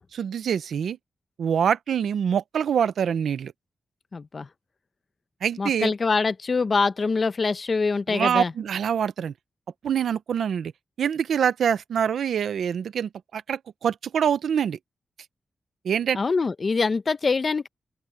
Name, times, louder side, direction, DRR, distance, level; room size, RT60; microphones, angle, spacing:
voice 1, 0.1-1.0 1.4-3.5 5.4-5.9 8.1-9.3 9.8-10.7 11.0-14.8 15.8-16.2, right 8 dB, 90° right, 0.8 m, -25 dB
voice 2, 4.1-4.5 5.6-8.5 16.1-17.7, left 4 dB, 45° left, 0.9 m, -24 dB
open air
cardioid pair, 80°, 0 cm